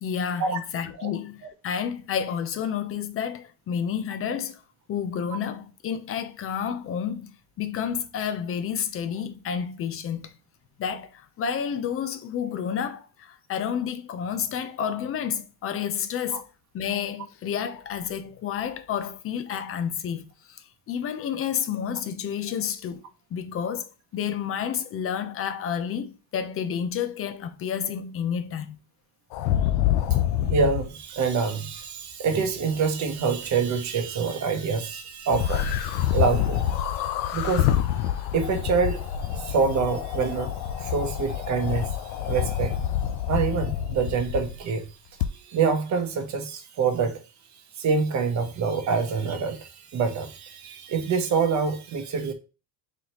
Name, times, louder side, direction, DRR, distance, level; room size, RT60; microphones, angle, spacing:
voice 1, 0.0-4.6 4.9-10.4 10.8-16.4 16.7-23.0 23.3-28.8, left 8 dB, 30° left, 0.4 m, -30 dB
sound 1, 29.3-30.9 35.3-44.6 45.2-45.3, left 11 dB, 80° left, 0.6 m, -26 dB
voice 2, 30.5-37.0 37.3-37.8 38.3-39.0 39.3-41.9 42.2-42.7 43.3-44.9 45.4-47.2 47.8-52.3, right 5 dB, 35° right, 0.9 m, -26 dB
3.9 x 3.2 x 2.9 m
cardioid pair, 125°, 47 cm